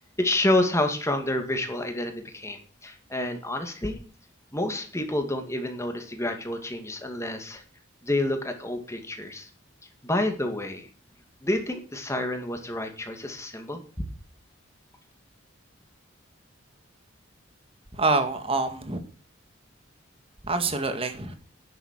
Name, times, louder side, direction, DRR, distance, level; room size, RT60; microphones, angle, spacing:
voice 1, 0.0-4.0 4.5-7.6 8.0-9.5 10.0-10.9 11.4-14.0, left 1 dB, 15° left, 5 dB, 2.2 m, -28 dB
voice 2, 17.9-19.0 20.4-21.4, right 3 dB, 30° right, 7 dB, 1.9 m, -26 dB
11.0 x 7.4 x 8.8 m, 0.41 s
head